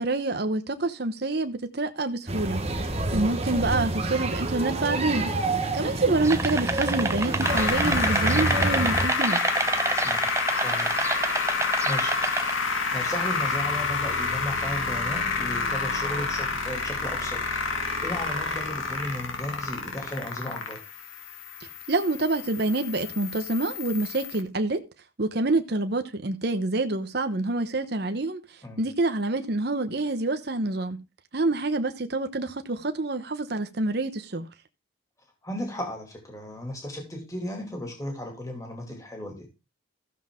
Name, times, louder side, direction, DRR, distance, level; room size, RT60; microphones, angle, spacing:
voice 1, 0.0-2.6 3.1-5.3 5.7-9.4 21.9-24.8 25.2-28.4 28.8-31.0 31.3-34.5, right 2 dB, 55° right, 0.9 m, -27 dB
sound 1, 2.3-9.1, right 2 dB, 30° right, 1.3 m, -28 dB
sound 2, 6.2-12.5, right 3 dB, 15° right, 0.6 m, -28 dB
sound 3, 7.4-24.4, left 4 dB, 85° left, 2.2 m, -29 dB
voice 2, 10.6-10.9 11.6-12.2 12.7-17.4 17.7-20.8 28.6-28.9 35.4-39.5, left 1 dB, 15° left, 2.4 m, -35 dB
14.0 x 7.1 x 3.7 m
head